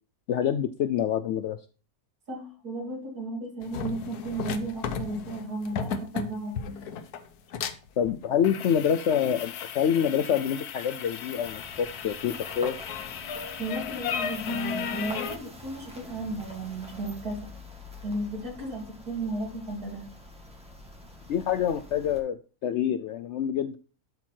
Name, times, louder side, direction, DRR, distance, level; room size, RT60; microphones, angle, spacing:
voice 1, 0.3-1.6 8.0-12.8 21.3-22.4 22.6-23.8, left 9 dB, 70° left, 9 dB, 0.7 m, -26 dB
voice 2, 2.3-6.6 13.6-17.5 18.0-20.0, right 2 dB, 75° right, -1 dB, 3.4 m, -34 dB
sound 1, 3.6-15.4, left 6 dB, 90° left, 1.3 m, -35 dB
sound 2, 11.4-22.2, left 1 dB, 5° right, 1.6 m, -46 dB
12.0 x 4.4 x 4.4 m, 0.36 s
omnidirectional pair, 1.6 m